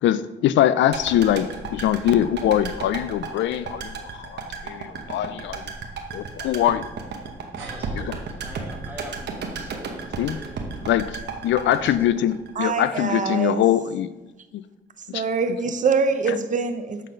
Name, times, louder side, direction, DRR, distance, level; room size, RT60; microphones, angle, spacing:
voice 1, 0.0-5.7 6.1-6.9 7.9-8.1 10.2-10.4 10.9-14.1 14.5-14.6 15.1-15.2, left 11 dB, 70° left, 14 dB, 0.4 m, -23 dB
sound 1, 0.9-13.1 13.4-13.5, right 5 dB, 60° right, 1.1 m, -34 dB
voice 2, 7.6-10.9 11.3-11.4 11.6-12.1, right 1 dB, 10° right, 0 dB, 1.6 m, -43 dB
sound 2, 7.6-12.4, right 3 dB, 75° right, 1.4 m, -48 dB
voice 3, 12.6-13.6 15.1-17.0, right 5 dB, 40° right, 8 dB, 0.7 m, -24 dB
7.5 x 4.0 x 5.1 m, 1.1 s
cardioid pair, 90°, 20 cm